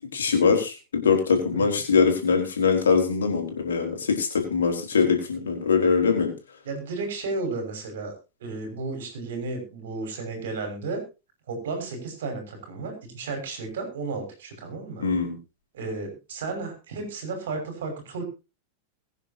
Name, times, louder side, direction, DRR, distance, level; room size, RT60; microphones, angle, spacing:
voice 1, 0.1-6.3 15.0-15.4, left 5 dB, 70° left, 3 dB, 4.6 m, -22 dB
voice 2, 6.6-8.1 8.4-11.0 11.5-15.1 15.7-18.2, right 3 dB, 60° right, 6 dB, 6.0 m, -33 dB
22.5 x 9.9 x 2.9 m, 0.29 s
figure-of-eight pair, 90°, 0 cm